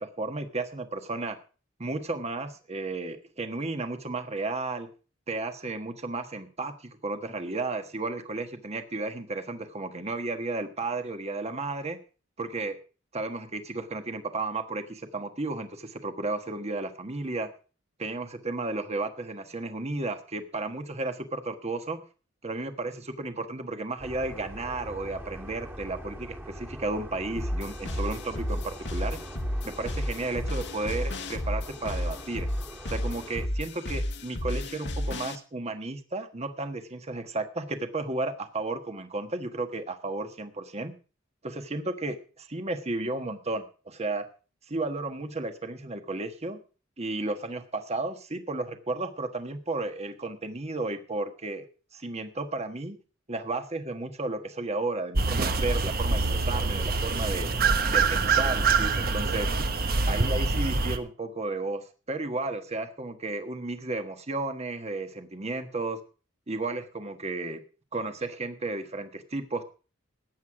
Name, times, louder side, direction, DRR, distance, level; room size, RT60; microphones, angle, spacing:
voice 1, 0.0-1.4 1.8-4.9 5.3-12.0 12.4-12.8 13.1-17.5 18.0-22.0 22.4-29.2 29.6-32.5 32.9-41.0 41.4-44.3 44.7-46.6 47.0-51.7 51.9-53.0 53.3-57.5 57.9-59.5 60.0-66.0 66.5-67.6 67.9-69.6, right 2 dB, 35° right, 7 dB, 1.4 m, -33 dB
sound 1, 24.0-33.5, equal, 10° right, 1.9 m, -43 dB
sound 2, 27.4-35.4, left 1 dB, 60° left, 1.6 m, -32 dB
sound 3, 55.1-61.0, right 4 dB, 50° right, 1.2 m, -25 dB
15.0 x 9.6 x 4.8 m, 0.36 s
head